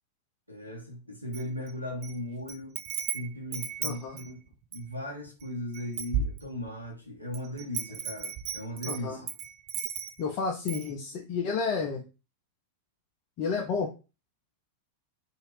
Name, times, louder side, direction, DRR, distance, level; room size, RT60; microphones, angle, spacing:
voice 1, 0.5-2.8 3.1-4.4 4.7-9.3, left 1 dB, 90° right, 0.7 m, -37 dB
Wind chime, 1.3-2.1 2.5-4.9 5.4-5.5 5.7-6.8 7.3-10.3 10.7-10.9, right 7 dB, 40° right, 0.4 m, -35 dB
voice 2, 3.8-4.2 8.9-9.2 10.2-12.0 13.4-13.9, left 5 dB, 40° left, 0.5 m, -31 dB
2.8 x 2.5 x 3.1 m
figure-of-eight pair, 90°, 0 cm